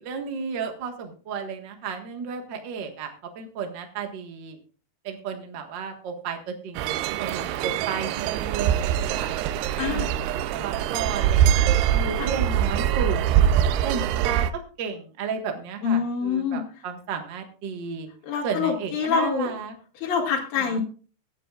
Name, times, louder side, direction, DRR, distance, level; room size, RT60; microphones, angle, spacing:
voice 1, 0.0-4.6 5.0-9.3 9.8-13.5 13.8-18.1 18.4-19.8 20.5-20.8, right 5 dB, 60° right, 5 dB, 1.1 m, -33 dB
sound 1, 6.8-14.5, right 10 dB, 85° right, 2.7 m, -23 dB
voice 2, 15.8-16.6 18.3-19.5 20.0-20.8, left 6 dB, 55° left, 1 dB, 3.4 m, -25 dB
23.5 x 9.1 x 2.4 m, 0.38 s
omnidirectional pair, 4.7 m